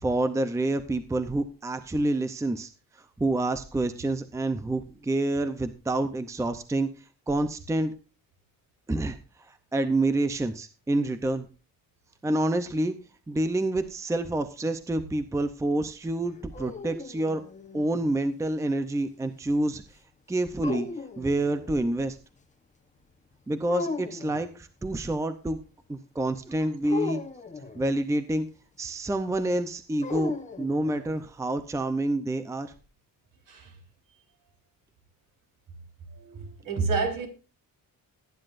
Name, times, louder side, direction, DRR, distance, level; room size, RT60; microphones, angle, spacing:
voice 1, 0.0-6.9 7.3-7.9 8.9-11.5 12.2-12.9 13.3-17.4 17.7-19.8 20.3-20.9 21.2-22.2 23.5-25.6 25.9-27.2 27.7-28.5 28.8-30.3 30.6-32.7, right 2 dB, 10° right, 0.6 m, -28 dB
sound 1, 16.3-18.1 20.6-21.9 23.7-24.5 26.9-28.0 30.0-31.2, left 4 dB, 20° left, 1.1 m, -36 dB
voice 2, 36.2-37.3, right 4 dB, 65° right, 4.2 m, -30 dB
19.5 x 10.0 x 2.6 m
wide cardioid pair, 175°, 35 cm